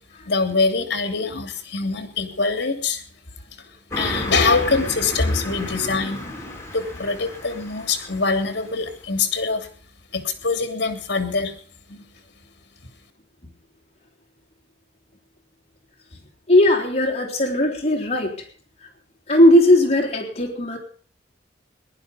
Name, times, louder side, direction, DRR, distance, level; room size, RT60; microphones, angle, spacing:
voice 1, 0.3-3.0 3.6-3.7 4.0-6.2 6.7-9.7 10.1-11.5 11.9-12.0, left 4 dB, 65° left, 8 dB, 3.1 m, -23 dB
Car passing by, 3.9-8.9, left 1 dB, 15° left, 4.3 m, -33 dB
voice 2, 16.5-18.3 19.3-20.8, left 1 dB, 35° left, -1 dB, 3.7 m, -17 dB
18.5 x 11.0 x 5.2 m, 0.44 s
head